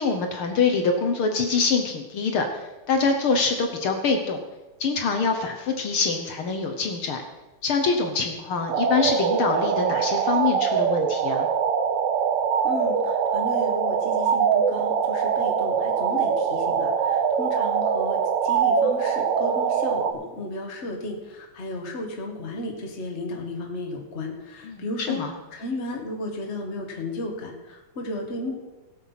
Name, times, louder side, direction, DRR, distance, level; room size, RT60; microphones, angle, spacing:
voice 1, 0.0-4.4 4.8-7.3 7.6-11.5 24.6-25.3, left 4 dB, 60° left, 4 dB, 1.5 m, -25 dB
sound 1, 8.7-20.1, right 6 dB, 75° right, 2.2 m, -23 dB
voice 2, 12.6-25.2 25.5-28.5, left 2 dB, 25° left, 1 dB, 1.7 m, -34 dB
16.5 x 7.9 x 5.7 m, 1.1 s
omnidirectional pair, 3.5 m